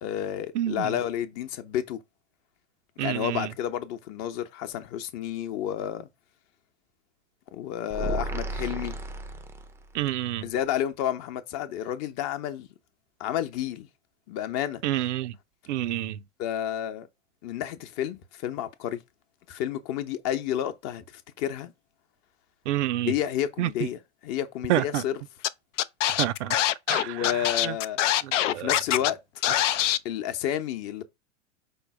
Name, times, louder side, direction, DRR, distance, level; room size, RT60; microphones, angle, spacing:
voice 1, 0.0-2.0 3.0-6.1 7.5-9.0 10.4-12.7 13.2-13.9 14.3-14.8 16.4-17.1 17.4-19.0 19.5-21.7 23.0-25.2 27.0-28.0 28.4-29.2 30.0-31.0, left 11 dB, 45° left, 0.8 m, -30 dB
voice 2, 0.5-0.9 3.0-3.5 9.9-10.4 14.8-15.3 15.7-16.2 22.7-23.1 23.6-23.7 24.7-25.0 26.2-26.6 26.9-27.7 28.5-28.7, right 14 dB, 70° right, 0.5 m, -28 dB
sound 1, 7.9-10.0, right 2 dB, 5° right, 0.4 m, -33 dB
Scratching (performance technique), 25.4-25.5 25.8-29.1 29.4-30.0, left 13 dB, 80° left, 0.5 m, -24 dB
5.2 x 2.0 x 4.7 m
hypercardioid pair, 100°, 36 cm